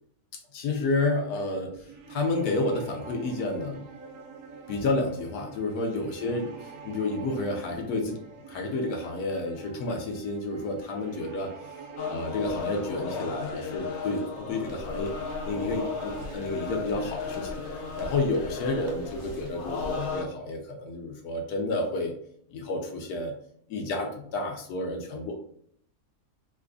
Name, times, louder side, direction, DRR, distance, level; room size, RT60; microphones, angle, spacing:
voice 1, 0.5-1.8 2.1-3.9 4.7-8.2 8.5-11.8 12.1-15.1 15.5-22.2 22.5-23.3 23.7-25.4, left 2 dB, 85° left, 2 dB, 1.1 m, -30 dB
sound 1, 1.7-19.4, right 5 dB, 75° right, 1.1 m, -46 dB
sound 2, 12.0-20.2, left 6 dB, 65° left, 0.7 m, -35 dB
sound 3, 14.6-20.1, equal, 55° right, 0.9 m, -46 dB
3.2 x 2.3 x 3.6 m, 0.65 s
omnidirectional pair, 1.6 m